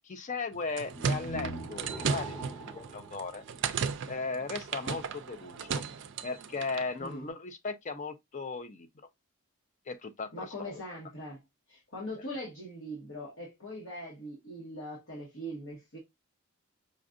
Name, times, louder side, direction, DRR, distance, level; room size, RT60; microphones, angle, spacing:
voice 1, 0.0-3.4 4.1-5.8 6.2-8.9 9.9-10.8, left 4 dB, 35° left, 0.5 m, -37 dB
sound 1, 0.5-6.9, right 6 dB, 55° right, 0.4 m, -35 dB
sound 2, 0.9-4.1, right 2 dB, 5° left, 0.8 m, -42 dB
voice 2, 10.3-11.4 11.7-16.0, equal, 60° left, 1.3 m, -41 dB
5.1 x 2.5 x 2.4 m
head